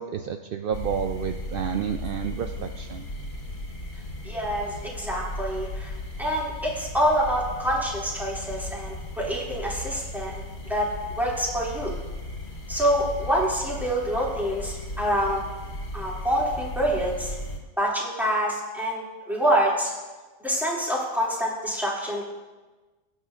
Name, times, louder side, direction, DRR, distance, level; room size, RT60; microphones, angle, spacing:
voice 1, 0.0-3.1, right 7 dB, 65° right, 5 dB, 0.5 m, -30 dB
sound 1, 0.7-17.6, left 1 dB, 70° left, 2.3 m, -36 dB
voice 2, 4.2-5.9 6.2-10.3 10.7-10.9 11.2-11.9 12.7-15.4 15.9-17.3 17.8-19.0 19.3-19.9 20.4-22.3, equal, ahead, -5 dB, 2.4 m, -26 dB
20.5 x 8.6 x 2.5 m, 1.2 s
omnidirectional pair, 1.4 m